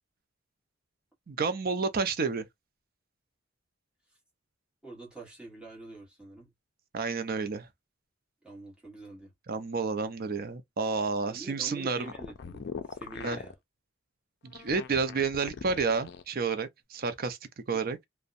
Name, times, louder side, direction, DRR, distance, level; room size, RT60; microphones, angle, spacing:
voice 1, 1.3-2.5 6.9-7.7 9.5-12.1 13.2-13.4 14.4-17.4 17.7-18.0, right 4 dB, 45° right, 0.5 m, -30 dB
voice 2, 4.8-6.5 8.4-9.3 11.3-13.6, right 2 dB, 5° right, 1.2 m, -46 dB
sound 1, 11.9-13.5 14.5-16.3, left 6 dB, 55° left, 0.4 m, -41 dB
2.6 x 2.1 x 2.4 m
head